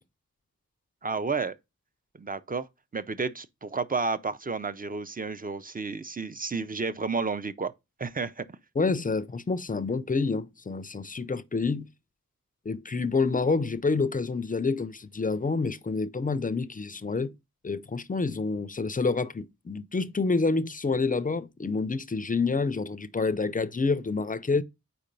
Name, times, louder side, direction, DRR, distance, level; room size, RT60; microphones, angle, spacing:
voice 1, 1.0-1.5 2.1-2.7 2.9-7.7 8.0-8.6, right 4 dB, 25° right, 0.5 m, -31 dB
voice 2, 8.8-11.9 12.7-17.3 17.6-24.6, left 4 dB, 25° left, 0.4 m, -28 dB
4.6 x 4.2 x 5.2 m
wide cardioid pair, 70°, 33 cm